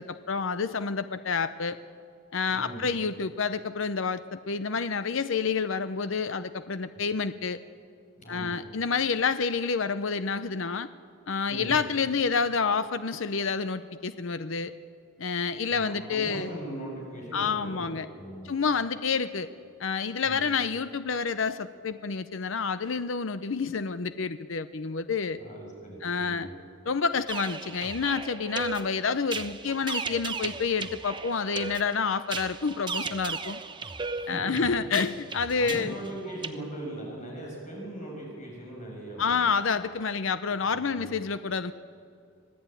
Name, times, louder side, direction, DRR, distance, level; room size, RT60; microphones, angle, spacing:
voice 1, 0.0-1.8 2.3-7.6 8.3-10.9 11.3-14.7 15.2-16.5 17.3-18.1 18.4-19.5 19.8-25.4 26.0-26.5 26.8-33.6 34.3-35.9 39.2-41.7, left 5 dB, 70° left, 12 dB, 0.7 m, -28 dB
voice 2, 2.5-2.8 8.2-8.6 11.5-11.8 15.7-18.5 20.2-20.4 25.3-26.5 34.1-34.6 35.5-39.5 40.6-41.1, right 1 dB, 35° left, -1 dB, 6.6 m, -39 dB
sound 1, 27.3-36.5, right 4 dB, 25° right, 0.9 m, -36 dB
26.5 x 17.5 x 9.1 m, 2.4 s
head